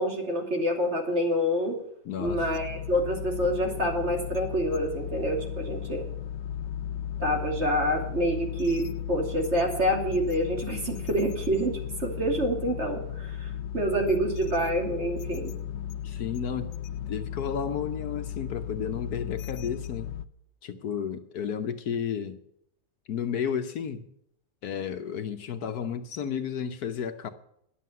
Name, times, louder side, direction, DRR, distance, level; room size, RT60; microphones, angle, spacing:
voice 1, 0.0-1.7 2.2-6.1 7.2-15.5, equal, 40° right, 2.8 m, -27 dB
voice 2, 2.0-2.5 16.0-16.7 17.1-20.1 20.6-22.4 23.1-24.1 24.6-27.3, left 7 dB, 65° left, 1.3 m, -32 dB
sound 1, 2.3-20.3, left 9 dB, 90° left, 1.3 m, -35 dB
11.0 x 7.7 x 9.4 m
omnidirectional pair, 1.8 m